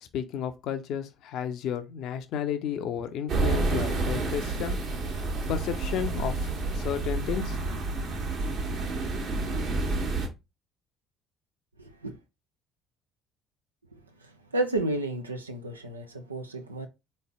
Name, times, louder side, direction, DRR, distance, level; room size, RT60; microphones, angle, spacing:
voice 1, 0.0-4.8 5.5-7.6, left 8 dB, 55° left, 0.6 m, -32 dB
sound 1, 3.3-10.3, right 3 dB, 50° right, 1.3 m, -29 dB
voice 2, 11.8-12.2 13.9-16.9, right 2 dB, 85° right, 0.4 m, -32 dB
4.1 x 3.2 x 3.5 m
figure-of-eight pair, 55°, 0 cm